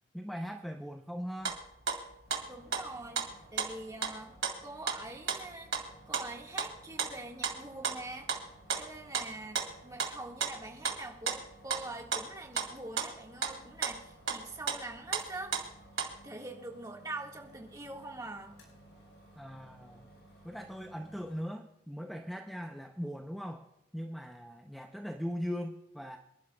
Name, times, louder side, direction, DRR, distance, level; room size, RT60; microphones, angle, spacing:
voice 1, 0.1-1.6 19.4-20.1 20.4-23.7 23.9-26.2, equal, ahead, 4 dB, 0.6 m, -40 dB
sound 1, 1.4-6.7 7.0-10.1 10.4-11.0 11.3-16.2, right 6 dB, 80° right, 2.4 m, -35 dB
sound 2, 2.2-21.4, right 1 dB, 60° left, 5.0 m, -58 dB
voice 2, 2.5-3.2 3.5-4.3 4.6-5.7 6.1-8.3 8.8-15.6 16.2-18.5, right 2 dB, 20° right, 0 dB, 1.7 m, -44 dB
27.5 x 11.5 x 2.3 m, 0.84 s
head